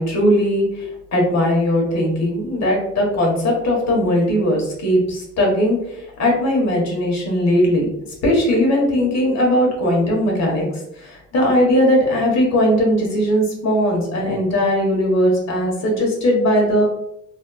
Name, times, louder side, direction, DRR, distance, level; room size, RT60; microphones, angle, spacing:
voice 1, 0.0-7.9 8.2-10.7 10.9-16.8, equal, 60° left, -1 dB, 1.3 m, -18 dB
3.3 x 2.6 x 2.3 m, 0.78 s
cardioid pair, 90°, 30 cm